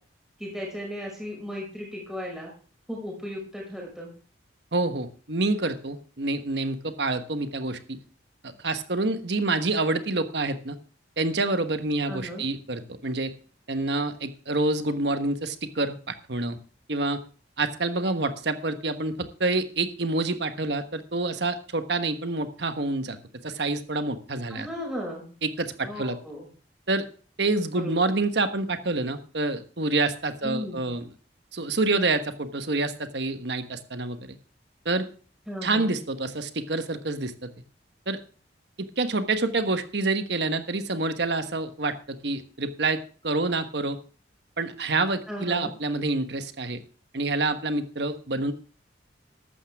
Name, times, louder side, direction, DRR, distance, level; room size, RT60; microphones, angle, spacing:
voice 1, 0.4-2.5 2.9-4.1 12.0-12.5 24.5-25.3 25.8-26.5 27.7-28.1 30.4-30.9 35.5-35.9 45.3-45.7, left 1 dB, 5° right, -3 dB, 5.5 m, -35 dB
voice 2, 4.7-8.0 8.4-10.8 11.2-13.3 13.7-16.6 16.9-17.2 17.6-23.2 23.4-24.7 25.4-26.2 26.9-27.0 27.4-31.0 31.5-34.4 34.8-35.1 35.6-37.5 38.1-38.2 38.8-44.0 44.6-46.8 47.1-48.5, right 2 dB, 65° right, 9 dB, 1.2 m, -27 dB
14.0 x 12.0 x 3.5 m, 0.39 s
head